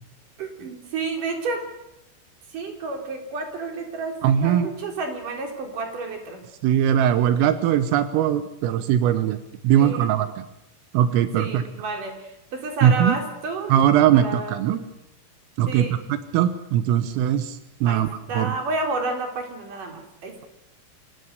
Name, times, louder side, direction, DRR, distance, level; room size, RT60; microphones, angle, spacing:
voice 1, 0.4-1.6 2.5-4.1 4.4-6.4 9.8-10.1 11.4-13.7 14.1-14.8 15.7-16.0 17.9-20.5, right 3 dB, 45° right, 4 dB, 4.7 m, -30 dB
voice 2, 4.2-4.7 6.6-9.4 9.6-10.5 10.9-11.6 12.8-13.2 13.7-14.8 15.6-18.1 18.4-18.5, right 10 dB, 85° right, 11 dB, 3.7 m, -20 dB
27.5 x 17.5 x 8.1 m, 0.87 s
omnidirectional pair, 5.8 m